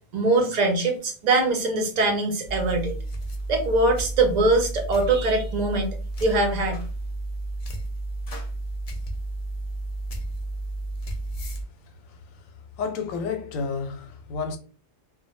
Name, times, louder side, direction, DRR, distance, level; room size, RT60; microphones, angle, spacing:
voice 1, 0.1-3.0 3.5-5.9 6.2-6.8, right 2 dB, 55° right, 0.5 m, -22 dB
sound 1, 2.4-11.6, right 2 dB, 60° left, 0.4 m, -32 dB
voice 2, 12.1-12.5 12.8-14.6, left 5 dB, 90° left, 1.0 m, -31 dB
2.1 x 2.1 x 3.1 m
omnidirectional pair, 1.3 m